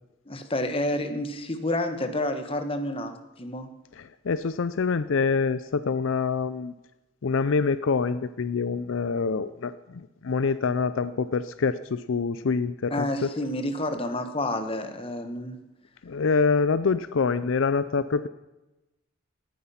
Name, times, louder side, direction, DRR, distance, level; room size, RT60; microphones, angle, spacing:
voice 1, 0.3-3.7 12.9-15.6, left 1 dB, 30° left, 7 dB, 1.4 m, -29 dB
voice 2, 4.0-6.7 7.2-13.3 16.0-18.3, left 5 dB, 75° left, 14 dB, 0.5 m, -26 dB
18.5 x 10.0 x 5.7 m, 1.0 s
head